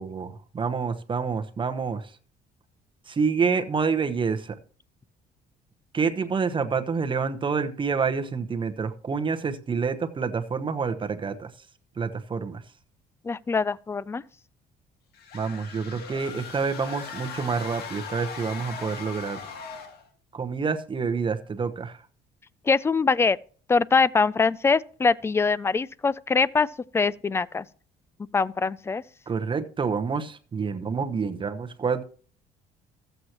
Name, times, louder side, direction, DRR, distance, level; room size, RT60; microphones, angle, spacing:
voice 1, 0.0-2.1 3.1-4.6 5.9-11.5 12.0-12.6 15.3-19.4 20.3-22.0 29.3-32.0, right 5 dB, 30° right, 1.0 m, -28 dB
voice 2, 13.2-14.2 22.7-23.4 23.7-26.7 26.9-27.6 28.3-29.0, left 4 dB, 15° left, 0.4 m, -23 dB
sound 1, 15.1-20.1, left 6 dB, 70° left, 1.9 m, -39 dB
14.5 x 8.0 x 3.0 m
cardioid pair, 110°, 17 cm